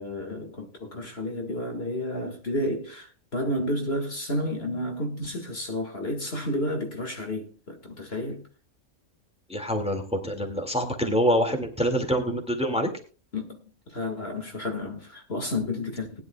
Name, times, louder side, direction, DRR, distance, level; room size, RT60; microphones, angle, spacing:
voice 1, 0.0-8.4 12.1-12.2 13.3-13.6 13.9-16.2, left 1 dB, 40° left, 1.9 m, -31 dB
voice 2, 9.5-12.9, equal, 5° right, 1.9 m, -25 dB
20.0 x 11.0 x 2.3 m
omnidirectional pair, 1.6 m